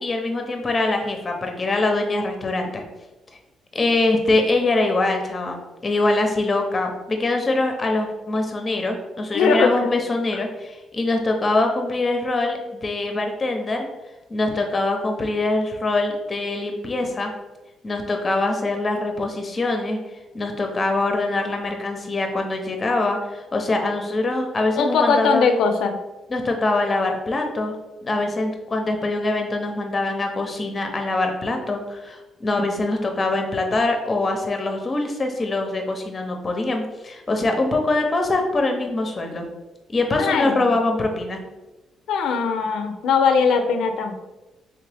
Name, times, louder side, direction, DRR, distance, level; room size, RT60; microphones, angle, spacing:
voice 1, 0.0-2.9 3.7-13.9 14.3-17.3 17.8-20.0 20.3-25.6 26.3-27.7 28.0-39.4 39.9-41.4, left 2 dB, 30° left, 3 dB, 0.7 m, -23 dB
voice 2, 9.3-9.8 24.8-26.0 40.2-40.7 42.1-44.2, left 5 dB, 80° left, 6 dB, 0.5 m, -20 dB
3.5 x 3.2 x 3.4 m, 1.1 s
cardioid pair, 90°, 0 cm